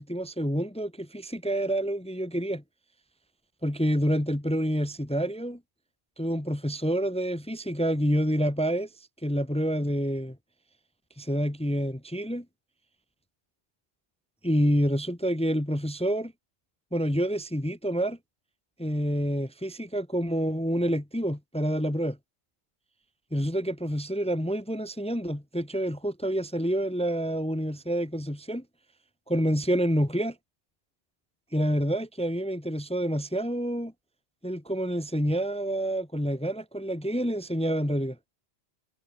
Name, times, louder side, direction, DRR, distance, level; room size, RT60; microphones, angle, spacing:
voice 1, 0.0-2.6 3.6-5.6 6.2-8.9 9.2-10.4 11.2-12.4 14.4-16.3 16.9-18.2 18.8-22.2 23.3-28.6 29.3-30.3 31.5-33.9 34.4-38.2, equal, 5° left, 0.7 m, -28 dB
omnidirectional pair, 1.1 m